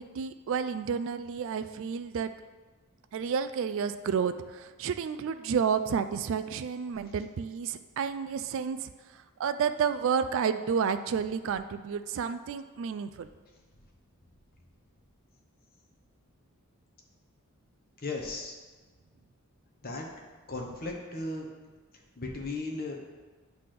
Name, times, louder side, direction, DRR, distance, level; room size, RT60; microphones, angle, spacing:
voice 1, 0.0-2.3 3.1-8.9 9.4-13.3, right 6 dB, 60° right, 10 dB, 0.3 m, -30 dB
voice 2, 18.0-18.6 19.8-20.2 20.5-21.5 22.2-23.0, left 2 dB, 45° left, 1 dB, 1.1 m, -36 dB
8.4 x 3.3 x 5.9 m, 1.3 s
head